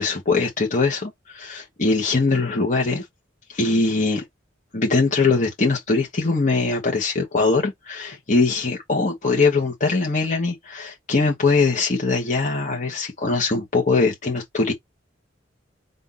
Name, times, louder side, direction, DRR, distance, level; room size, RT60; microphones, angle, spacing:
voice 1, 0.0-3.0 3.5-4.2 4.7-14.7, left 3 dB, 40° left, 1.2 m, -21 dB
4.3 x 2.7 x 3.8 m
head